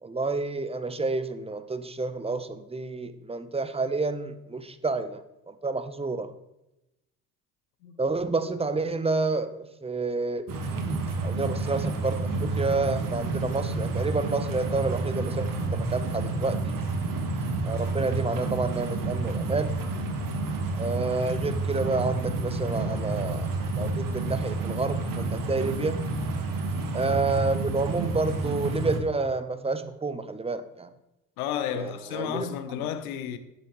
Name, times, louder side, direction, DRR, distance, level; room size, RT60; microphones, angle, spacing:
voice 1, 0.0-5.2 5.6-6.3 8.0-16.8 17.6-19.8 20.7-23.5 23.8-26.0 26.9-30.9 31.8-32.4, right 3 dB, 15° right, 0.8 m, -29 dB
sound 1, 10.5-29.0, right 3 dB, 50° right, 1.6 m, -30 dB
voice 2, 31.4-33.4, left 9 dB, 80° left, 0.9 m, -32 dB
10.5 x 7.7 x 3.1 m
hypercardioid pair, 60°, 42 cm